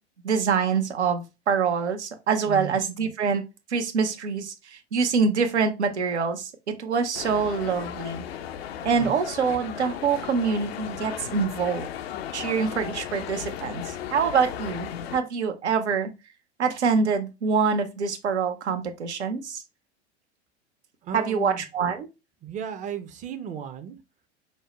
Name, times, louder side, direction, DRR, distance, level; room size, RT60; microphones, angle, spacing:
voice 1, 0.2-3.4 3.7-8.2 8.8-11.9 12.3-16.1 16.6-19.6 21.1-22.1, right 5 dB, 75° right, 0.7 m, -25 dB
voice 2, 2.5-2.8 9.0-9.1 21.0-21.6 22.4-24.0, right 8 dB, 20° right, 0.5 m, -35 dB
sound 1, 7.1-15.2, left 9 dB, 65° left, 0.6 m, -36 dB
5.3 x 2.1 x 2.9 m
figure-of-eight pair, 90°, 34 cm